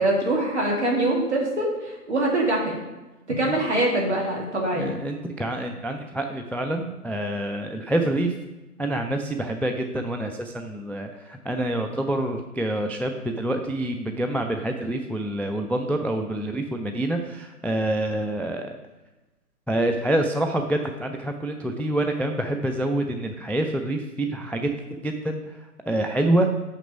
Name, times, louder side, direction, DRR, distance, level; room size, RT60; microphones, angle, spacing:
voice 1, 0.0-2.8 3.3-5.0, right 1 dB, 45° right, -2 dB, 2.0 m, -24 dB
voice 2, 4.7-8.3 8.8-18.8 19.7-25.4 25.9-26.5, right 1 dB, 5° left, 4 dB, 0.3 m, -27 dB
6.0 x 5.9 x 5.1 m, 1.1 s
figure-of-eight pair, 165°, 47 cm